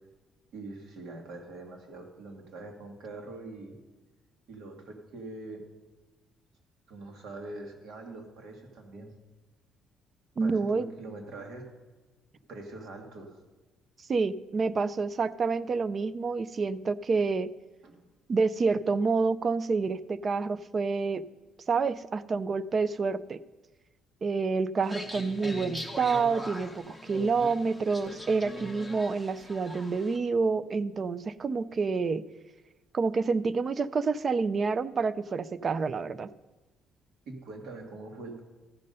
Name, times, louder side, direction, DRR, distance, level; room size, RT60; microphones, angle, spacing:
voice 1, 0.5-3.7 4.5-5.6 6.9-9.1 10.4-11.6 12.5-13.4 17.8-18.0 37.3-38.4, right 2 dB, 70° right, 3 dB, 1.8 m, -43 dB
voice 2, 10.4-10.9 14.1-17.5 18.3-21.2 21.7-23.4 24.2-32.2 32.9-36.3, right 4 dB, 30° right, 17 dB, 0.3 m, -28 dB
sound 1, 24.8-30.2, left 1 dB, 5° right, 0.9 m, -41 dB
14.0 x 5.3 x 5.4 m, 1.2 s
cardioid pair, 145°, 0 cm